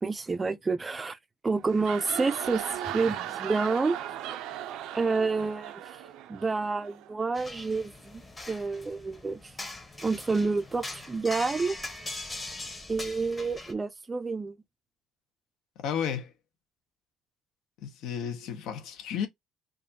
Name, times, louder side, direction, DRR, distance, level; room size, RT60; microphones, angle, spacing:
voice 1, 0.0-1.2 1.4-4.0 4.9-5.7 6.3-8.2 8.5-9.5 10.0-11.8 12.9-14.5, right 4 dB, 15° right, 0.5 m, -29 dB
sound 1, 1.6-7.1, right 11 dB, 80° right, 0.6 m, -37 dB
sound 2, 7.3-13.7, left 2 dB, 15° left, 0.9 m, -41 dB
voice 2, 15.8-16.3 17.8-19.3, left 8 dB, 70° left, 1.1 m, -32 dB
5.1 x 2.6 x 2.7 m
cardioid pair, 150°, 0 cm